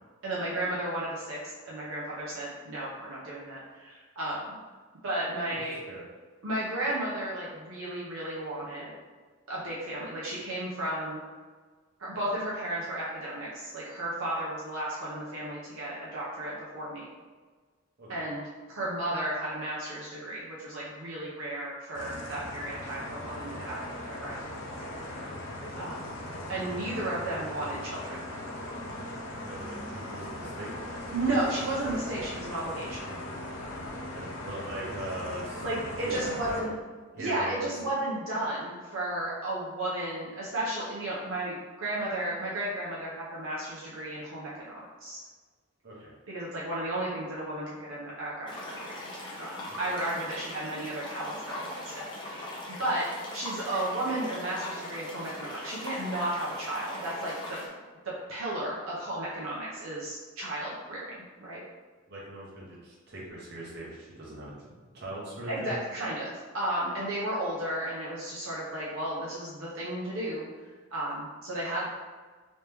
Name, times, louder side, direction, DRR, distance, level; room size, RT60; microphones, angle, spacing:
voice 1, 0.2-4.4 5.0-5.8 6.4-9.0 9.5-11.2 12.0-17.1 18.1-25.2 25.7-26.1 26.5-28.1 31.1-33.2 35.6-36.7 37.2-45.2 46.3-53.1 53.3-57.6 58.0-61.6 65.5-71.9, right 1 dB, 75° right, -7 dB, 0.8 m, -34 dB
sound 1, 21.9-36.6, left 1 dB, 75° left, 0.6 m, -39 dB
voice 2, 29.4-30.7 34.1-36.7 37.1-37.7 45.8-46.1 49.7-49.8 62.1-65.7, right 1 dB, 50° right, -6 dB, 1.0 m, -41 dB
sound 2, 48.5-57.7, left 1 dB, 20° left, 0.6 m, -40 dB
3.1 x 2.9 x 3.4 m, 1.4 s
head